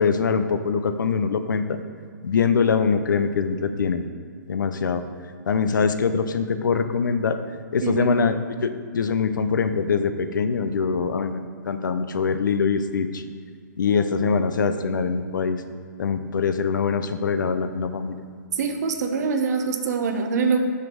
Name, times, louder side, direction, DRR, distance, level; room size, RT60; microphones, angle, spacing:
voice 1, 0.0-1.8 2.2-4.0 4.5-5.0 5.5-7.4 7.7-13.2 13.8-15.6 16.0-18.2, left 5 dB, 90° left, 9 dB, 0.5 m, -23 dB
voice 2, 7.8-8.2 18.6-20.6, right 5 dB, 60° right, 6 dB, 0.9 m, -24 dB
6.5 x 5.2 x 6.1 m, 2.2 s
hypercardioid pair, 145°, 10 cm